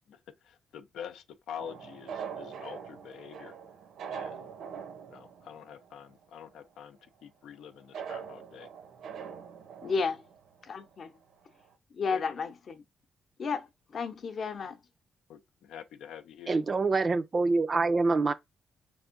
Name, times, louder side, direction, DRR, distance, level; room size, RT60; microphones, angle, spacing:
voice 1, 0.4-3.5 4.1-4.5 5.1-8.7 12.1-12.3 15.3-16.6, left 8 dB, 85° left, 0.5 m, -46 dB
sound 1, 1.6-6.2 6.6-6.7 7.9-10.9 11.3-11.4 11.6-11.7, right 7 dB, 70° right, 0.6 m, -43 dB
voice 2, 9.8-10.2 10.7-11.1 11.9-12.8 13.4-13.7 13.9-14.8, left 5 dB, 45° left, 0.7 m, -32 dB
voice 3, 16.5-18.3, right 3 dB, 30° right, 0.4 m, -25 dB
4.4 x 3.5 x 2.5 m
cardioid pair, 130°, 0 cm